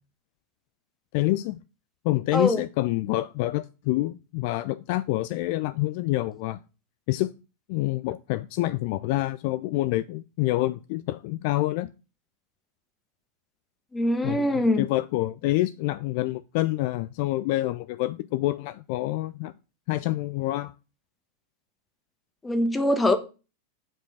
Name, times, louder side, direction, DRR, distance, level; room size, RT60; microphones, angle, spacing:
voice 1, 1.1-1.6 2.0-6.6 7.1-7.3 7.7-11.9 14.2-19.5 19.9-20.7, left 17 dB, 45° left, 0.4 m, -27 dB
voice 2, 13.9-14.9 22.4-23.2, left 1 dB, 10° left, 1.3 m, -23 dB
7.6 x 5.1 x 6.4 m
figure-of-eight pair, 90°, 0 cm